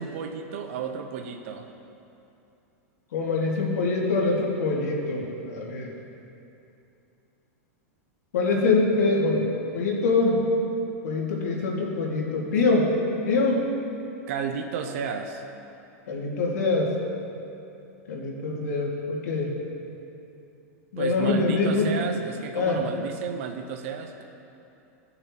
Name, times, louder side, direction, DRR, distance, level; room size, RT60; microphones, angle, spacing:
voice 1, 0.0-1.7 14.3-15.4 21.0-24.2, right 6 dB, 55° right, 4 dB, 0.7 m, -32 dB
voice 2, 3.1-5.9 8.3-10.4 11.0-12.9 13.3-13.7 16.1-16.9 18.1-19.5 20.9-21.9 22.5-22.8, left 3 dB, 80° left, -2 dB, 2.0 m, -24 dB
15.5 x 6.8 x 2.9 m, 2.7 s
supercardioid pair, 150°, 8 cm